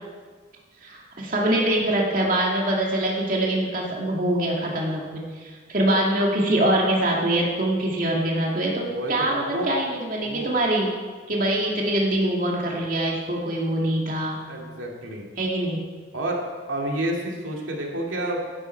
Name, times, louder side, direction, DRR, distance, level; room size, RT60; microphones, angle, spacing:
voice 1, 0.8-10.9 11.3-14.4 15.4-15.8, right 1 dB, 45° right, -2 dB, 2.4 m, -24 dB
voice 2, 8.8-9.7 10.2-10.5 14.5-15.3 16.1-16.4 16.7-18.4, right 1 dB, 85° right, -1 dB, 2.4 m, -29 dB
18.0 x 11.0 x 4.6 m, 1.5 s
head